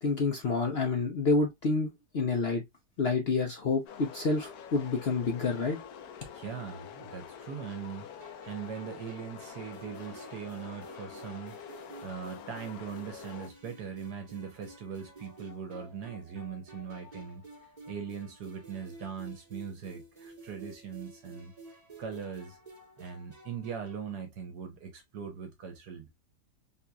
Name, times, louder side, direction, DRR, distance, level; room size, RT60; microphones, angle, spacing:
voice 1, 0.0-2.6 3.0-5.8, left 3 dB, 55° left, 0.7 m, -28 dB
sound 1, 3.9-13.5, left 8 dB, 75° left, 1.1 m, -47 dB
voice 2, 6.3-11.8 12.0-22.6 23.0-26.1, right 7 dB, 75° right, 1.4 m, -41 dB
sound 2, 8.2-24.1, right 2 dB, 25° right, 1.5 m, -51 dB
3.9 x 2.9 x 2.3 m
omnidirectional pair, 1.8 m